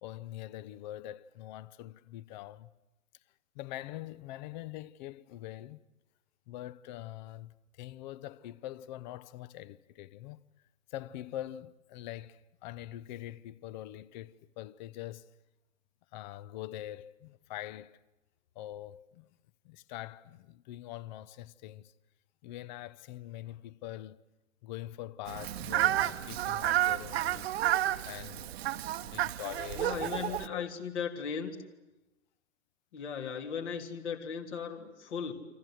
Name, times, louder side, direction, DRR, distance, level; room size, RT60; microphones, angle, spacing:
voice 1, 0.0-2.7 3.5-5.8 6.5-10.4 10.9-15.3 16.1-18.0 18.5-19.3 19.6-21.9 22.4-24.2 24.6-27.5 28.0-28.6 29.0-30.7, left 14 dB, 35° left, 0.9 m, -44 dB
Fowl, 25.3-30.5, right 13 dB, 50° right, 1.2 m, -31 dB
voice 2, 29.7-31.6 32.9-35.3, left 6 dB, 60° left, 3.4 m, -37 dB
29.5 x 25.5 x 7.9 m
hypercardioid pair, 125°, 39 cm